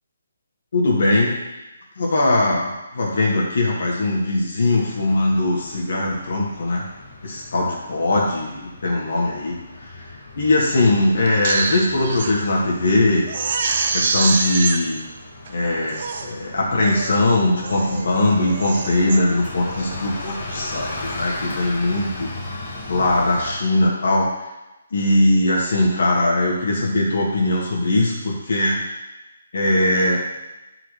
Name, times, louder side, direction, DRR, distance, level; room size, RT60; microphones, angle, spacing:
voice 1, 0.7-1.3 2.0-6.8 7.2-9.6 9.9-10.0 10.3-13.3 13.9-15.0 15.5-22.3 22.9-24.3 24.9-28.8 29.5-30.2, left 2 dB, 60° left, -4 dB, 1.7 m, -20 dB
Bus, 4.7-23.5, left 2 dB, 30° left, 1.8 m, -36 dB
Crying sobbing, 11.3-12.3 12.8-12.9 13.3-14.8 15.5-15.6 15.9-16.3 16.8-17.2 17.6-18.1 18.4-19.2 19.7-20.0, right 4 dB, 45° right, 0.6 m, -25 dB
11.0 x 4.0 x 3.3 m, 1.0 s
hypercardioid pair, 165°, 0 cm